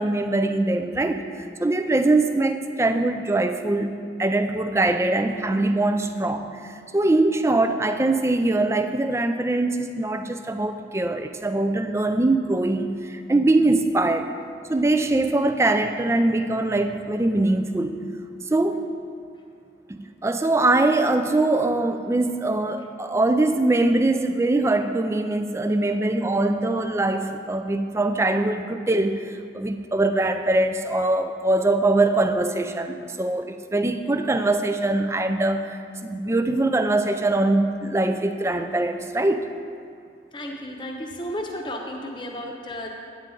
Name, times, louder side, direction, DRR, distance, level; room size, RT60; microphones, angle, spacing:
voice 1, 0.0-14.3 14.7-18.0 18.5-18.9 19.9-39.5, right 2 dB, 15° right, 8 dB, 0.3 m, -22 dB
voice 2, 40.3-42.9, left 1 dB, 25° left, 1 dB, 0.9 m, -33 dB
9.6 x 8.5 x 3.8 m, 2.4 s
head